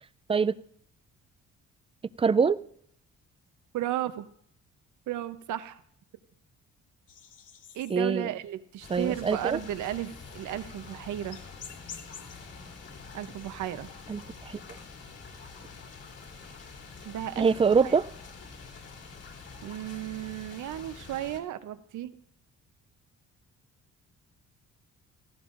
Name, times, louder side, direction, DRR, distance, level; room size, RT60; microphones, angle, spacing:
voice 1, 2.2-2.6 7.9-8.3 8.9-9.6 14.1-14.6 17.4-18.0, right 5 dB, 20° right, 17 dB, 0.4 m, -24 dB
voice 2, 3.7-4.3 5.1-5.8 7.7-11.4 13.1-13.9 17.0-17.5 17.8-18.0 19.6-22.2, right 12 dB, 80° right, 12 dB, 0.8 m, -34 dB
sound 1, 7.1-12.3, left 7 dB, 80° left, 1.4 m, -49 dB
sound 2, 8.8-21.4, left 4 dB, 55° left, 3.1 m, -46 dB
17.0 x 15.0 x 2.6 m, 0.66 s
cardioid pair, 90°, 30 cm